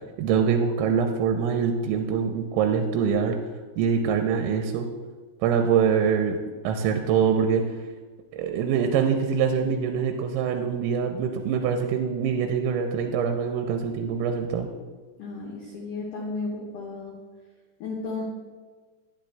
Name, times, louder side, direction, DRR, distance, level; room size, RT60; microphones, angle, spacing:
voice 1, 0.2-3.4 3.8-4.9 5.4-6.4 6.6-7.6 8.3-14.7, right 7 dB, 85° right, 4 dB, 2.9 m, -24 dB
voice 2, 15.2-17.2 17.8-18.2, left 3 dB, 80° left, -4 dB, 1.8 m, -33 dB
11.0 x 10.0 x 2.3 m, 1.4 s
omnidirectional pair, 5.5 m